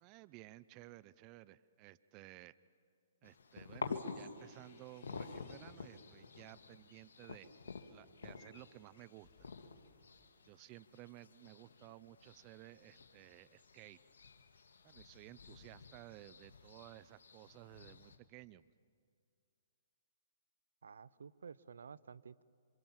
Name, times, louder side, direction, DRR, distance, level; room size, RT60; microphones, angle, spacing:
voice 1, 0.0-2.5 3.2-7.5 7.9-9.5 10.5-14.0 14.8-18.6, right 16 dB, 35° right, 18 dB, 0.6 m, -56 dB
sound 1, 3.2-18.2, left 5 dB, 75° left, 2.1 m, -50 dB
sound 2, 4.2-6.6 7.1-10.4, left 5 dB, 45° left, 4.9 m, -71 dB
voice 2, 20.8-22.4, right 6 dB, 80° right, 20 dB, 0.7 m, -52 dB
27.5 x 26.0 x 7.4 m, 2.3 s
hypercardioid pair, 135°, 0 cm